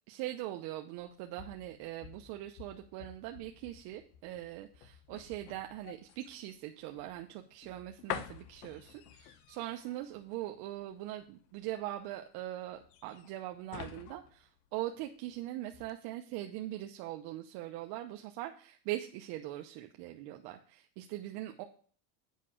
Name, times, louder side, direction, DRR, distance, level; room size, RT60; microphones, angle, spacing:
voice 1, 0.1-21.6, right 14 dB, 55° right, 4 dB, 0.8 m, -41 dB
sound 1, 1.0-15.4 15.7-15.9, left 11 dB, 85° left, 1.1 m, -48 dB
8.4 x 5.6 x 6.2 m, 0.43 s
supercardioid pair, 145°, 46 cm